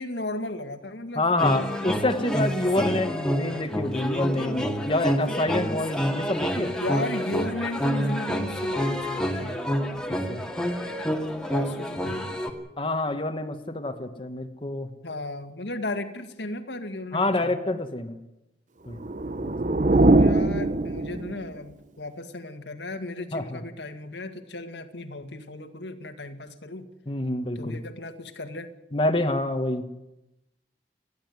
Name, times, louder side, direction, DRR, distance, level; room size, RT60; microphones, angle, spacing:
voice 1, 0.0-1.3 6.8-9.5 11.5-12.3 15.0-17.6 19.9-26.9 27.6-28.7, left 2 dB, 80° left, 7 dB, 2.0 m, -35 dB
voice 2, 1.1-6.7 10.1-10.4 12.8-14.9 17.1-18.2 18.9-19.0 19.4-19.6 23.3-23.6 27.1-27.8 28.9-29.9, left 2 dB, 30° left, 5 dB, 1.4 m, -27 dB
sound 1, 1.4-12.5, equal, 5° left, 2.1 m, -28 dB
sound 2, 18.9-21.6, right 2 dB, 45° right, 0.8 m, -22 dB
30.0 x 11.5 x 9.4 m, 0.91 s
head